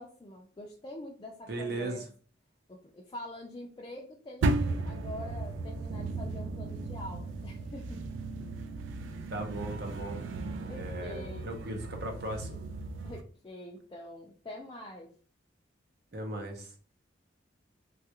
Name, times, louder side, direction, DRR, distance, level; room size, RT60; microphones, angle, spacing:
voice 1, 0.0-2.0 2.7-8.2 10.7-11.5 13.0-15.1, left 1 dB, 25° left, -1 dB, 0.4 m, -45 dB
voice 2, 1.5-2.0 9.3-10.2 10.7-12.6 16.1-16.7, right 1 dB, 60° right, 3 dB, 0.7 m, -37 dB
sound 1, 4.4-13.2, right 3 dB, 85° right, 0.4 m, -35 dB
3.2 x 2.3 x 2.9 m, 0.41 s
head